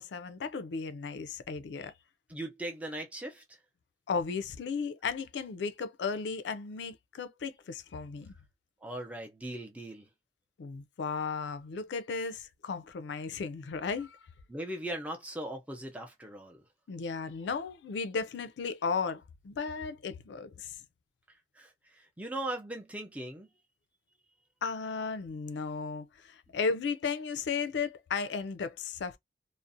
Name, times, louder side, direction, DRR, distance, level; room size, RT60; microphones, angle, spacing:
voice 1, 0.0-1.9 4.1-8.3 10.6-14.2 16.9-20.8 24.6-29.2, left 5 dB, 80° left, 0.4 m, -35 dB
voice 2, 2.3-3.4 8.8-10.0 14.5-16.6 21.6-21.7 22.2-23.5, right 1 dB, 10° right, 0.4 m, -39 dB
2.4 x 2.0 x 2.6 m
head